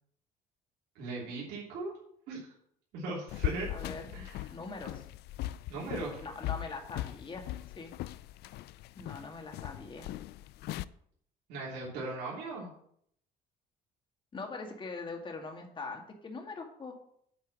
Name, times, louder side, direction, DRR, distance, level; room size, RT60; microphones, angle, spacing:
voice 1, 0.9-1.9 2.3-2.5 2.9-3.7 4.1-4.4 5.7-6.2 11.5-12.7, right 3 dB, 85° right, -5 dB, 3.1 m, -38 dB
sound 1, 3.3-10.8, left 15 dB, 75° left, 0.4 m, -39 dB
voice 2, 3.7-4.1 4.5-5.0 6.2-7.5 7.8-7.9 9.0-10.1 14.3-16.9, left 4 dB, 30° left, 2 dB, 2.0 m, -42 dB
8.6 x 4.5 x 7.2 m, 0.68 s
cardioid pair, 110°, 17 cm